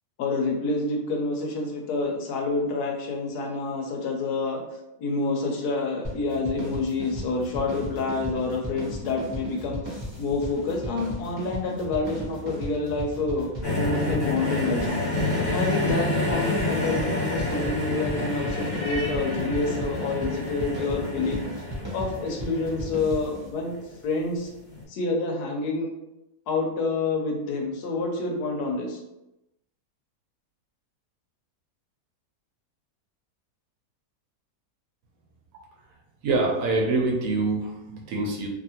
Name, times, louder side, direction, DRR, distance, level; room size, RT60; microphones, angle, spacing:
voice 1, 0.2-4.6 5.0-21.6 21.9-23.7 24.0-24.5 24.9-25.9 26.5-29.0, left 3 dB, 80° left, 1 dB, 1.2 m, -28 dB
sound 1, 6.0-23.5, equal, 25° right, 0.6 m, -36 dB
sound 2, 13.6-23.8 24.7-24.8, left 2 dB, 35° left, 0.9 m, -29 dB
voice 2, 36.2-38.5, right 3 dB, 70° right, 0 dB, 1.0 m, -25 dB
2.7 x 2.6 x 2.7 m, 0.92 s
omnidirectional pair, 1.7 m